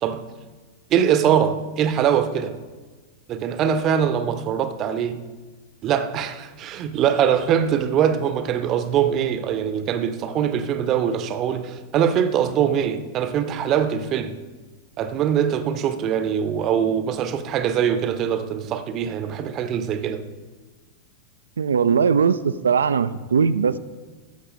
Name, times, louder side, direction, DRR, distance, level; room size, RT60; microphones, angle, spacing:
voice 1, 0.9-2.6 3.3-5.2 5.8-14.4 15.0-20.3, right 8 dB, 35° right, 0.7 m, -22 dB
voice 2, 21.6-23.8, right 6 dB, 70° right, 0.4 m, -20 dB
13.5 x 6.1 x 4.0 m
figure-of-eight pair, 90°, 0 cm